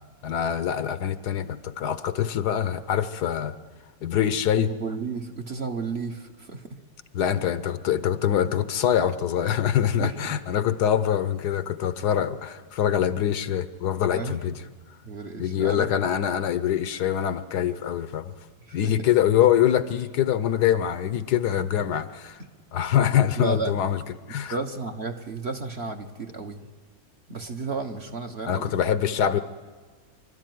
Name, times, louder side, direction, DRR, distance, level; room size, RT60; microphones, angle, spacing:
voice 1, 0.2-3.6 4.0-4.7 7.1-14.6 15.4-18.3 18.7-22.4 22.7-24.0 24.3-24.6 28.4-29.4, left 10 dB, 70° left, 13 dB, 1.3 m, -24 dB
voice 2, 4.6-6.8 9.9-10.4 14.1-14.4 15.0-16.1 18.6-19.1 23.4-23.8 24.5-26.7 27.3-28.8, right 4 dB, 40° right, 4 dB, 1.2 m, -33 dB
25.5 x 13.0 x 9.3 m, 1.5 s
omnidirectional pair, 1.8 m